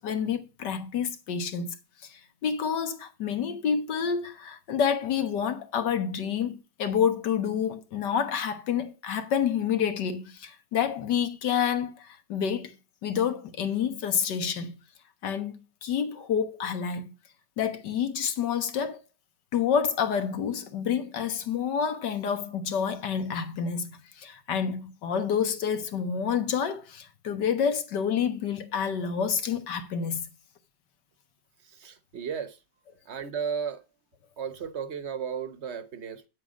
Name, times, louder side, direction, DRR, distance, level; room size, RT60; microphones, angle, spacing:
voice 1, 0.0-1.8 2.0-12.8 13.0-14.7 15.2-17.1 17.6-19.0 19.5-30.2, left 7 dB, 75° left, 1.9 m, -28 dB
voice 2, 31.8-32.5 33.1-33.8 34.4-36.3, right 7 dB, 45° right, 1.2 m, -34 dB
9.7 x 7.9 x 5.1 m
omnidirectional pair, 1.9 m